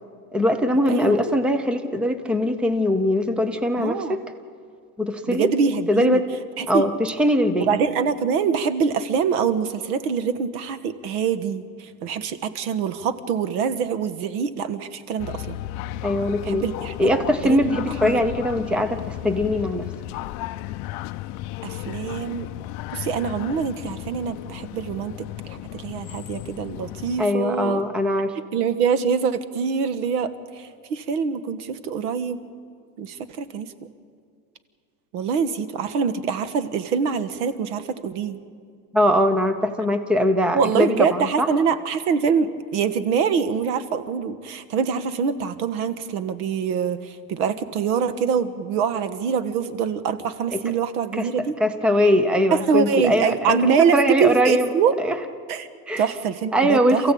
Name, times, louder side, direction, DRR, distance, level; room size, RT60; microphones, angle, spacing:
voice 1, 0.3-4.2 5.0-5.5 5.9-6.2 6.7-7.7 16.0-16.7 17.0-19.9 27.2-28.3 38.9-41.5 50.5-50.6 51.1-51.3 51.6-54.7 55.0-55.2 55.9-56.1 56.5-57.1, equal, ahead, 9 dB, 0.7 m, -21 dB
voice 2, 0.9-1.4 3.8-4.2 5.3-6.2 6.6-6.8 7.6-15.6 16.4-16.9 17.4-18.2 21.6-22.5 22.9-27.8 28.3-32.4 33.0-33.7 35.1-38.4 40.5-51.6 52.5-54.9 55.5-55.7 56.0-57.0, right 6 dB, 85° right, 12 dB, 1.6 m, -24 dB
sound 1, 15.2-27.2, left 15 dB, 40° left, 0.5 m, -34 dB
27.5 x 15.5 x 8.6 m, 2.3 s
cardioid pair, 165°, 44 cm